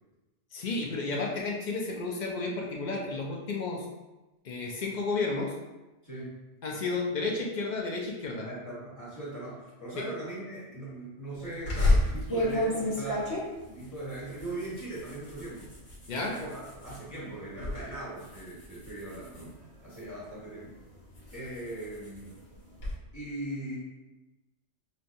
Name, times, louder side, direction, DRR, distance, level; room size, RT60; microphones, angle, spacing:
voice 1, 0.5-3.8 4.4-5.5 6.6-8.5 10.0-10.1 16.1-16.3, left 3 dB, 55° left, -1 dB, 0.5 m, -32 dB
voice 2, 6.0-6.4 8.4-13.4 13.6-15.7 16.2-19.5 19.8-20.7 21.3-22.4 23.1-23.8, right 1 dB, 15° left, -8 dB, 1.3 m, -39 dB
sound 1, 11.7-17.0 17.4-17.8 18.2-20.2 20.8-22.9, left 1 dB, 75° left, 1.3 m, -31 dB
5.2 x 2.2 x 2.6 m, 1.1 s
omnidirectional pair, 1.3 m